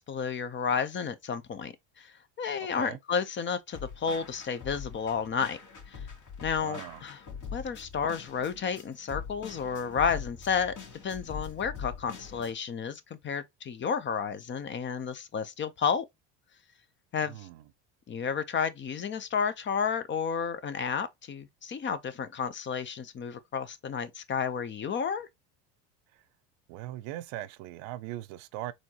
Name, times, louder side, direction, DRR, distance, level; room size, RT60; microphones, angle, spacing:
voice 1, 0.0-5.6 5.9-6.0 6.4-7.2 7.5-10.7 11.0-16.0 17.1-17.5 18.1-25.3, left 6 dB, 30° left, 0.7 m, -31 dB
sound 1, 3.7-12.5, left 6 dB, 55° left, 2.2 m, -43 dB
voice 2, 6.6-7.0 17.3-17.6 26.7-28.7, right 14 dB, 75° right, 0.6 m, -39 dB
4.2 x 3.0 x 2.9 m
supercardioid pair, 100°, 37 cm